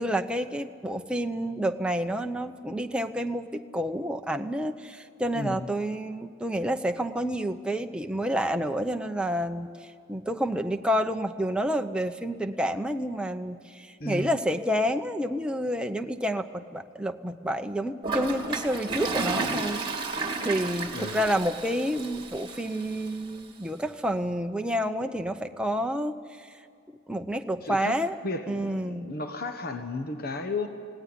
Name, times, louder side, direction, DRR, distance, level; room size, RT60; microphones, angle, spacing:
voice 1, 0.0-19.8 20.1-26.5 27.1-28.2 28.5-29.1, equal, 5° right, 5 dB, 0.8 m, -29 dB
voice 2, 5.3-5.7 14.0-14.4 20.9-21.2 27.6-28.0 28.2-30.7, left 2 dB, 45° left, 6 dB, 1.3 m, -33 dB
Toilet flush, 18.0-23.1, right 3 dB, 25° right, 2.2 m, -32 dB
19.5 x 17.5 x 9.8 m, 2.3 s
head